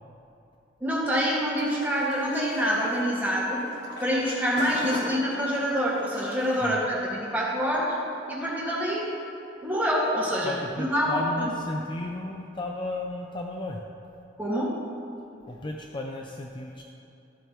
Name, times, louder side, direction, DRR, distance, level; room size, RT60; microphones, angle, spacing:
voice 1, 0.8-3.6 4.0-7.9 8.3-9.1 9.6-11.5 14.4-14.7, equal, 10° right, -7 dB, 2.0 m, -26 dB
sound 1, 1.6-6.7, left 1 dB, 60° left, 1.5 m, -41 dB
voice 2, 10.4-13.8 15.5-16.8, left 1 dB, 25° left, 1 dB, 0.5 m, -34 dB
14.0 x 7.9 x 3.1 m, 2.9 s
head